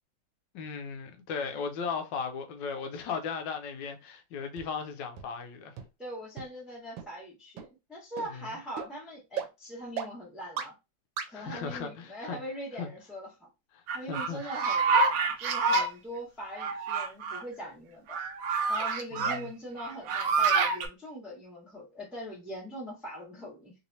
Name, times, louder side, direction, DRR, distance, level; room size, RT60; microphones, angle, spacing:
voice 1, 0.5-5.7 8.3-8.4 11.3-12.4 12.8-12.9 13.7-13.8 14.1-14.4 19.2-19.5, left 5 dB, 75° left, 1.2 m, -36 dB
sound 1, 4.6-4.7 5.2-5.3 5.8-5.9 6.4-6.5 7.0-7.1 7.6-7.7 8.2-8.3 8.8-8.9 9.4-9.5 10.0-10.1 10.6-10.7 11.2-11.3, right 8 dB, 85° right, 1.4 m, -35 dB
voice 2, 6.0-10.7 11.3-13.5 13.9-18.2 18.7-23.7, equal, ahead, 1.0 m, -41 dB
sound 2, 13.9-15.9 16.6-17.4 18.1-19.4 19.8-20.9, right 4 dB, 70° right, 0.8 m, -27 dB
3.3 x 3.0 x 2.7 m
omnidirectional pair, 2.0 m